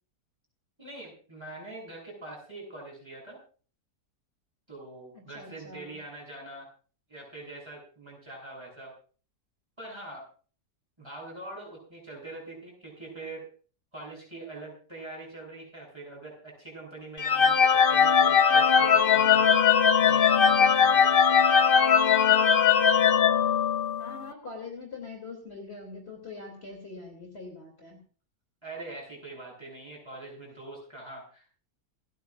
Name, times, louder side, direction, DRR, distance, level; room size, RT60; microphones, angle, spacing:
voice 1, 0.8-3.4 4.7-6.7 7.1-8.9 9.8-10.2 11.0-13.5 13.9-21.7 28.6-31.5, right 2 dB, 15° right, -2 dB, 7.6 m, -43 dB
voice 2, 5.1-6.0 24.0-28.0, left 3 dB, 35° left, 1 dB, 2.9 m, -43 dB
sound 1, 17.2-24.2, left 7 dB, 70° left, 0.5 m, -20 dB
28.0 x 9.8 x 2.4 m, 0.39 s
omnidirectional pair, 1.8 m